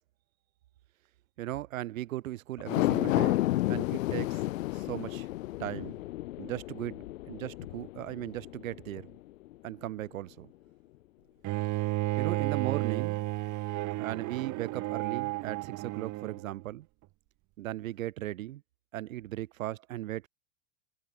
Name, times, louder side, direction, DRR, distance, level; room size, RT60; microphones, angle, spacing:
voice 1, 1.4-3.4 3.7-4.4 4.7-5.3 5.6-5.9 6.4-9.1 9.6-10.5 12.2-13.3 14.0-16.9 17.6-18.6 18.9-20.3, right 14 dB, 90° right, 4.4 m, -37 dB
sound 1, 2.6-9.1 9.5-9.6, left 17 dB, 85° left, 1.7 m, -31 dB
Bowed string instrument, 11.4-16.5, right 19 dB, 45° right, 4.4 m, -32 dB
supercardioid pair, 130°, 39 cm